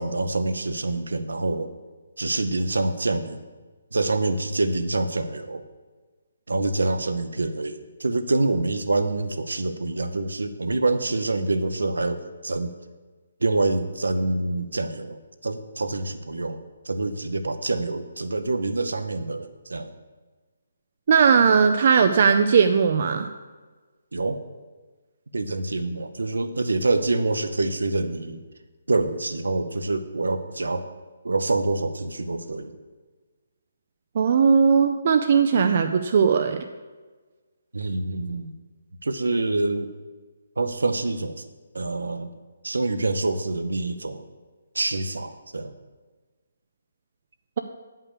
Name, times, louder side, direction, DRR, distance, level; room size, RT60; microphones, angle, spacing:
voice 1, 0.0-1.7 2.2-3.4 3.9-5.6 6.5-12.7 13.4-19.9 24.1-24.4 25.3-28.4 28.9-30.9 31.2-32.8 37.7-38.5 39.0-39.9 40.6-41.4 41.7-42.3 42.6-44.2 44.7-45.7, right 2 dB, 70° right, 9 dB, 0.8 m, -26 dB
voice 2, 21.1-23.3 34.2-36.6, right 6 dB, 45° right, 7 dB, 0.5 m, -18 dB
9.4 x 5.6 x 6.8 m, 1.3 s
figure-of-eight pair, 140°, 0 cm